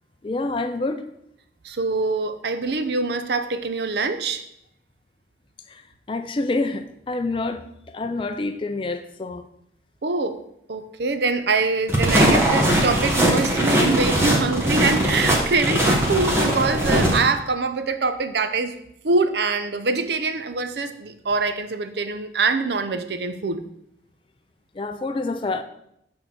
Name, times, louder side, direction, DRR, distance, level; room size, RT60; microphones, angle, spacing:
voice 1, 0.2-1.0 6.1-9.4 24.8-25.6, left 2 dB, 30° left, 7 dB, 0.4 m, -27 dB
voice 2, 1.6-4.4 10.0-10.4 10.7-18.7 19.0-23.6, right 3 dB, 65° right, 9 dB, 0.6 m, -24 dB
sound 1, 11.9-17.2, right 1 dB, 15° right, 1.1 m, -20 dB
6.9 x 3.8 x 6.0 m, 0.76 s
head